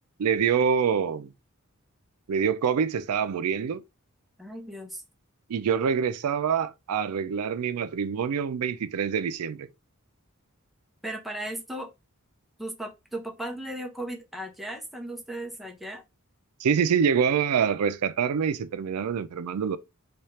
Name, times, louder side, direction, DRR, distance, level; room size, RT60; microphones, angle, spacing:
voice 1, 0.2-1.3 2.3-3.8 5.5-9.7 16.6-19.8, right 7 dB, 90° right, 0.4 m, -25 dB
voice 2, 4.4-5.0 11.0-11.9 12.6-16.0, right 1 dB, ahead, 0.6 m, -36 dB
4.2 x 2.3 x 3.2 m
head